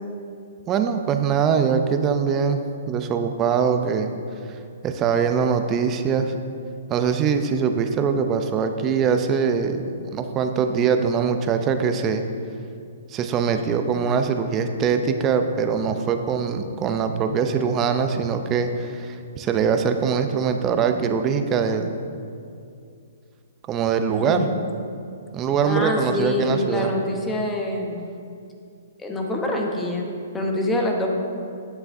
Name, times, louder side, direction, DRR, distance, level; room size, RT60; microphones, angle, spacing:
voice 1, 0.7-4.1 4.8-6.3 6.9-9.8 10.1-12.2 13.1-21.9 23.7-24.5 25.3-26.9, right 6 dB, 25° right, 7 dB, 0.5 m, -22 dB
voice 2, 24.1-24.4 25.6-28.1 29.0-31.1, left 1 dB, 10° left, 1 dB, 0.8 m, -25 dB
8.9 x 6.9 x 2.6 m, 2.4 s
hypercardioid pair, 140°, 0 cm